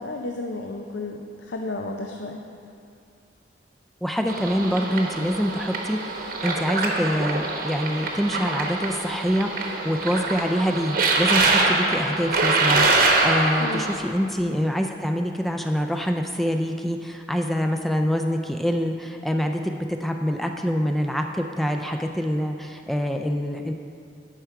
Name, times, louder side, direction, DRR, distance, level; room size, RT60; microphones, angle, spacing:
voice 1, 0.0-2.4 13.6-13.8, left 2 dB, 75° left, 3 dB, 0.5 m, -32 dB
voice 2, 4.0-23.7, equal, ahead, 4 dB, 0.3 m, -25 dB
sound 1, 4.3-13.9, right 3 dB, 55° right, 0.9 m, -24 dB
10.0 x 5.7 x 4.7 m, 2.5 s
head